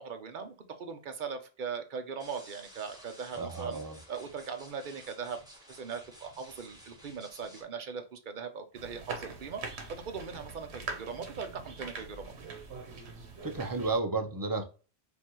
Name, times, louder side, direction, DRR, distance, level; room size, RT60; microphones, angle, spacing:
voice 1, 0.0-3.8 4.1-5.4 5.7-9.6 9.9-12.3, right 6 dB, 55° right, 7 dB, 0.8 m, -40 dB
sound 1, 2.2-7.6, equal, 5° right, 1.2 m, -54 dB
voice 2, 3.3-4.0 13.4-14.6, right 3 dB, 30° right, 5 dB, 0.4 m, -32 dB
sound 2, 8.7-14.0, right 4 dB, 80° right, 1.2 m, -43 dB
5.2 x 2.4 x 3.0 m, 0.35 s
omnidirectional pair, 1.1 m